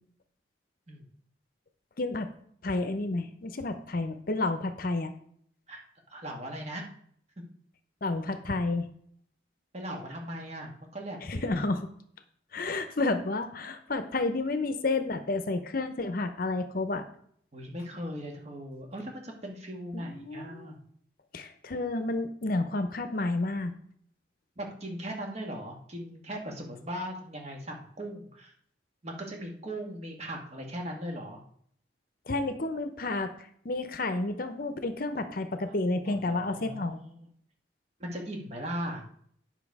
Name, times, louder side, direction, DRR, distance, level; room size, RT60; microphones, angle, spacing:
voice 1, 2.0-2.3 2.6-5.1 8.0-8.9 11.3-11.9 12.5-17.1 19.9-20.7 21.3-23.7 32.3-33.3 33.6-37.0, left 2 dB, 50° left, 9 dB, 0.7 m, -30 dB
voice 2, 6.1-6.9 9.7-11.4 17.5-20.8 24.6-28.5 29.0-31.4 35.7-35.8 36.0-37.2 38.0-39.0, equal, 35° right, 1 dB, 1.6 m, -38 dB
9.2 x 5.9 x 4.8 m, 0.64 s
head